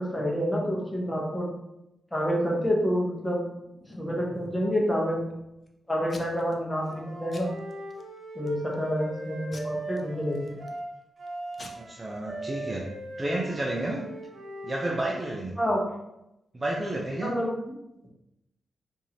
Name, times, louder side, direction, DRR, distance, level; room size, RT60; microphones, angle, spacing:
voice 1, 0.0-1.5 2.1-3.4 4.0-5.3 5.9-7.5 8.3-10.6 15.6-15.8 17.2-17.7, equal, 10° left, -3 dB, 0.9 m, -28 dB
Packing tape duct tape / Tearing, 3.4-4.7 5.2-5.7 6.1-6.5 6.9-7.0 7.3-8.0 8.5-8.8 9.5-10.8 11.3-11.4 11.5-11.7, left 2 dB, 30° left, 0.5 m, -47 dB
Wind instrument woodwind instrument, 6.9-15.4, right 2 dB, 50° right, 0.9 m, -40 dB
voice 2, 11.7-12.8 13.2-14.0 14.6-15.5 16.5-17.3, right 1 dB, 20° right, -3 dB, 0.5 m, -31 dB
4.6 x 2.6 x 2.8 m, 0.87 s
wide cardioid pair, 140°, 0 cm